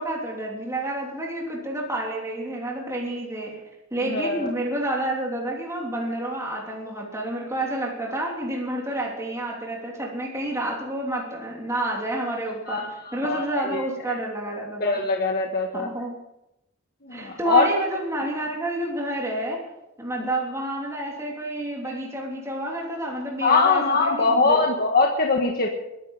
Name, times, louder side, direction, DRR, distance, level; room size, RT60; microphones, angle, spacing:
voice 1, 0.0-15.0 15.7-16.2 17.1-19.7 20.0-24.7, right 1 dB, 15° right, -2 dB, 3.2 m, -29 dB
voice 2, 4.1-4.5 12.7-13.4 13.7-13.8 14.8-15.9 17.0-17.7 23.4-25.7, left 4 dB, 45° left, 1 dB, 1.6 m, -22 dB
22.5 x 11.5 x 5.6 m, 0.91 s
head